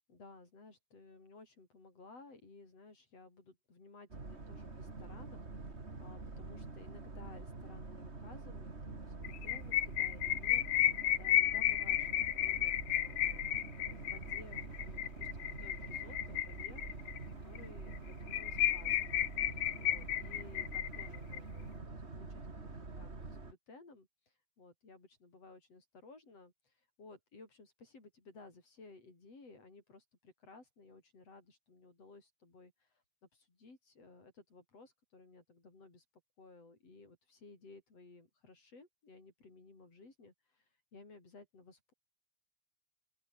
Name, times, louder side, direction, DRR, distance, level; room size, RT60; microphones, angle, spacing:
voice 1, 0.1-17.0 17.3-19.2 19.8-36.1 36.4-41.9, left 3 dB, 35° left, 7.0 m, -57 dB
Boat Water vehicle, 4.1-23.5, right 3 dB, 20° right, 2.1 m, -46 dB
sound 1, 9.2-17.2 17.6-17.7 17.9-18.0 18.3-21.4, left 12 dB, 90° left, 1.6 m, -33 dB
open air
omnidirectional pair, 4.9 m